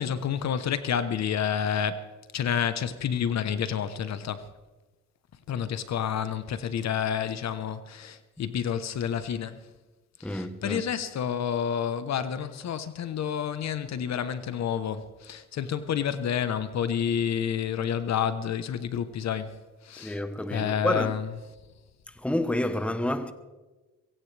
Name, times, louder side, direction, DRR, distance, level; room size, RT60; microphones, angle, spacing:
voice 1, 0.0-2.1 2.3-4.5 5.5-9.6 10.3-19.5 19.8-20.2 20.5-21.3, left 8 dB, 60° left, 1.1 m, -29 dB
voice 2, 10.2-10.8 19.9-21.2 22.2-23.3, left 1 dB, 5° left, 1.2 m, -29 dB
22.5 x 17.0 x 3.4 m
cardioid pair, 90°, 30 cm